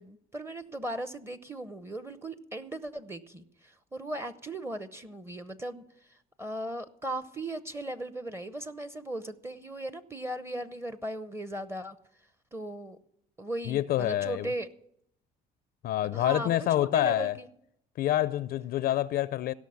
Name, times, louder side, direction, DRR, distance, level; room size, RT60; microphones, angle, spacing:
voice 1, 0.0-5.8 6.1-12.0 12.5-13.0 13.4-14.7 16.1-17.5, right 1 dB, 15° right, 0.8 m, -37 dB
voice 2, 13.7-14.5 15.8-17.4 18.0-19.5, left 13 dB, 60° left, 0.4 m, -27 dB
16.5 x 6.2 x 8.6 m
cardioid pair, 110°, 17 cm